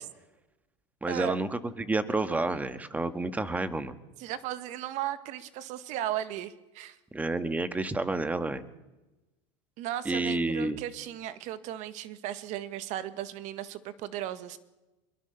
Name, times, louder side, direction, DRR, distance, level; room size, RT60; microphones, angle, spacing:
voice 1, 1.0-3.9 7.1-8.6 10.0-10.8, right 2 dB, 10° right, 11 dB, 1.6 m, -30 dB
voice 2, 4.2-7.0 9.8-14.6, right 12 dB, 50° right, 12 dB, 1.8 m, -36 dB
23.5 x 22.0 x 6.9 m, 1.1 s
supercardioid pair, 125°, 15 cm